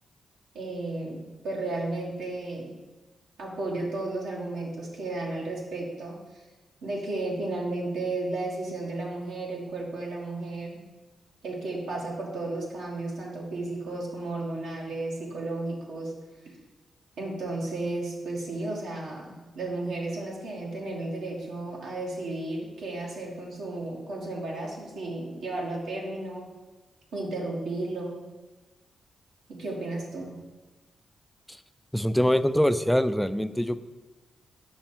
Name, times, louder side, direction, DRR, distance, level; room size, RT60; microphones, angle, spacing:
voice 1, 0.5-2.7 3.4-6.2 6.8-10.8 11.4-16.1 17.2-26.5 27.1-28.3 29.5-30.4, right 2 dB, 85° right, -3 dB, 1.4 m, -33 dB
voice 2, 31.9-33.8, equal, 5° left, 11 dB, 0.4 m, -24 dB
5.6 x 5.1 x 4.4 m, 1.2 s
supercardioid pair, 55°, 0 cm